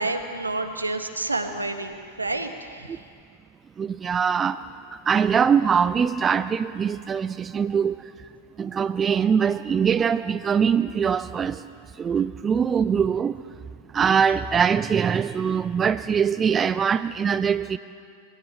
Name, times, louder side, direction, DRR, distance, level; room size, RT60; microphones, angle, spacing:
voice 1, 0.0-3.0, right 2 dB, 80° right, 7 dB, 1.4 m, -29 dB
voice 2, 3.8-4.7 4.9-8.0 8.6-11.6 12.0-13.4 13.9-17.8, right 7 dB, 20° right, 14 dB, 0.5 m, -22 dB
21.0 x 17.0 x 7.4 m, 2.2 s
figure-of-eight pair, 90°, 0 cm